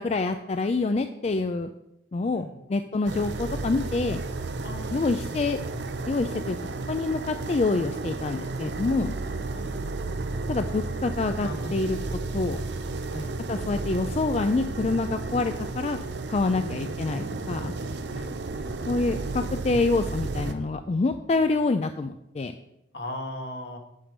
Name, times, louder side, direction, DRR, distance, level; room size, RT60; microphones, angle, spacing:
voice 1, 0.0-1.7 2.1-4.2 4.9-5.6 6.1-6.6 6.9-9.1 10.5-12.0 12.3-12.6 13.5-16.0 16.3-17.7 18.9-22.5, left 3 dB, 35° left, 8 dB, 0.4 m, -26 dB
sound 1, 3.1-20.5, right 3 dB, 80° right, 0.7 m, -33 dB
voice 2, 4.6-5.2 9.5-9.7 11.4-11.7 13.1-13.3 18.1-18.7 22.9-23.8, left 1 dB, 70° left, 3 dB, 1.6 m, -38 dB
8.9 x 5.2 x 6.5 m, 0.85 s
head